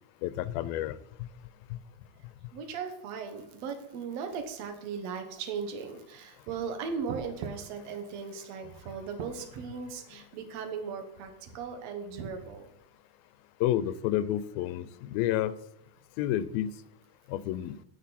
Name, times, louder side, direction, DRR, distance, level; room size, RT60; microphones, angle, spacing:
voice 1, 0.2-1.0 13.6-15.5 16.2-16.7 17.3-17.8, left 12 dB, 85° left, 16 dB, 2.4 m, -29 dB
voice 2, 2.5-12.7, right 6 dB, 60° right, 6 dB, 2.0 m, -37 dB
15.5 x 6.3 x 4.2 m, 0.79 s
omnidirectional pair, 4.3 m